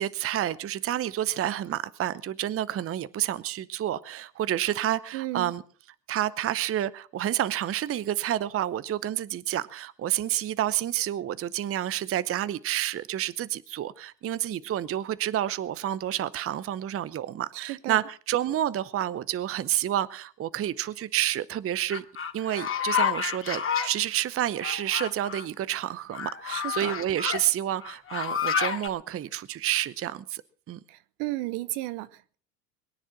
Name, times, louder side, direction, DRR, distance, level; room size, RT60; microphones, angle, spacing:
voice 1, 0.0-5.6 6.1-22.0 22.3-30.4 30.7-30.8, right 12 dB, 30° right, 0.8 m, -29 dB
voice 2, 5.1-5.5 17.5-18.0 26.5-26.9 30.9-32.4, right 18 dB, 60° right, 1.2 m, -34 dB
sound 1, 21.9-23.9 24.6-25.5 26.1-27.4 27.8-28.9, left 7 dB, 25° left, 2.3 m, -29 dB
22.5 x 10.0 x 5.9 m
hypercardioid pair, 75°, 50 cm